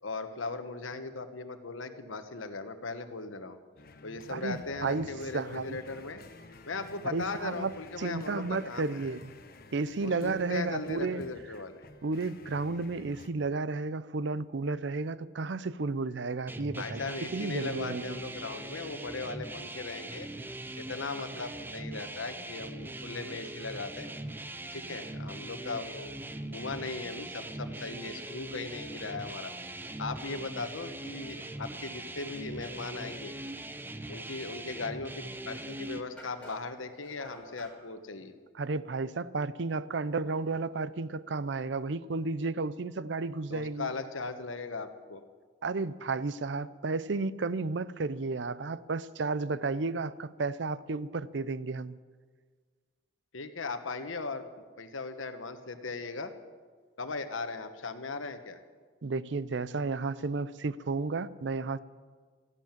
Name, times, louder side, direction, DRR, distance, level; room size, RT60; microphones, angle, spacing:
voice 1, 0.0-3.6 4.0-6.2 6.6-9.1 10.0-11.8 16.8-20.3 20.7-24.1 24.7-26.2 26.5-29.5 30.0-33.3 34.1-38.3 43.5-45.2 53.3-54.4 54.8-56.3 57.0-58.6, left 3 dB, 90° left, 9 dB, 1.2 m, -38 dB
sound 1, 3.8-13.3, left 2 dB, 50° left, 1.0 m, -52 dB
voice 2, 4.3-5.8 7.0-9.3 9.7-11.2 12.0-18.2 38.5-43.9 45.6-52.0 59.0-61.8, right 3 dB, 65° right, 17 dB, 0.5 m, -33 dB
sound 2, 16.5-36.0, right 2 dB, 10° right, 0.6 m, -41 dB
sound 3, 36.2-37.8, equal, 5° left, 4.3 m, -49 dB
14.0 x 11.5 x 9.0 m, 1.5 s
head